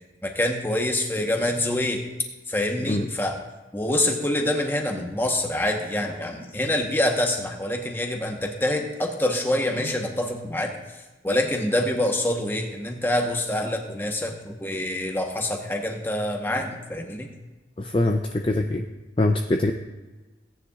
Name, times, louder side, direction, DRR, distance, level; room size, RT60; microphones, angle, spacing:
voice 1, 0.2-2.0 2.5-3.4 3.7-10.7 11.2-17.3, left 1 dB, 10° left, 2 dB, 1.0 m, -26 dB
voice 2, 17.8-18.9 19.2-19.7, left 2 dB, 30° left, 3 dB, 0.5 m, -23 dB
17.5 x 9.8 x 2.4 m, 1.2 s
head